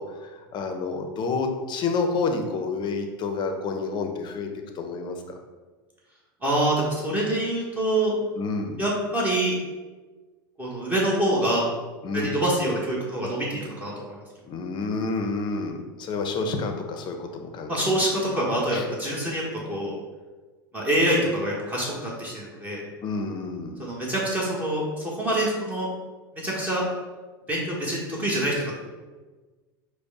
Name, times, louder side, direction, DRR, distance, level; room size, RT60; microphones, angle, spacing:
voice 1, 0.0-4.5 4.7-5.2 8.4-8.8 12.0-12.4 14.4-17.9 18.3-18.4 18.7-18.9 23.0-23.8, left 4 dB, 40° left, 5 dB, 0.7 m, -29 dB
voice 2, 6.4-8.2 8.8-9.5 10.6-11.6 12.1-14.2 17.7-19.4 19.7-20.0 20.7-22.8 23.8-25.9 26.4-26.8 27.5-28.7, right 1 dB, 15° right, -5 dB, 1.3 m, -25 dB
5.0 x 2.2 x 4.8 m, 1.3 s
hypercardioid pair, 105°, 12 cm